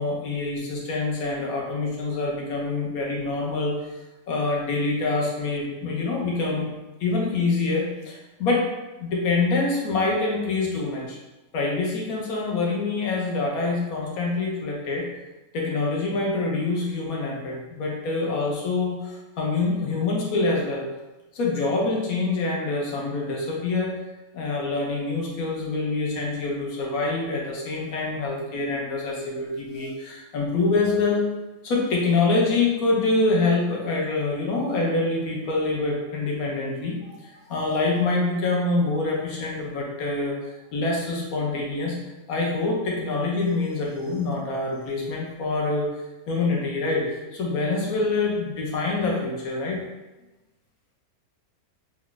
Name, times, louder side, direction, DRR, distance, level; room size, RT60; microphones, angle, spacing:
voice 1, 0.0-3.7 4.3-6.7 7.0-8.6 9.0-11.2 11.5-15.1 15.5-20.9 21.3-24.0 24.3-31.2 31.6-37.0 37.2-42.0 42.3-45.8 46.3-49.9, left 3 dB, 75° left, -2 dB, 1.3 m, -25 dB
3.2 x 2.3 x 3.8 m, 1.1 s
omnidirectional pair, 1.5 m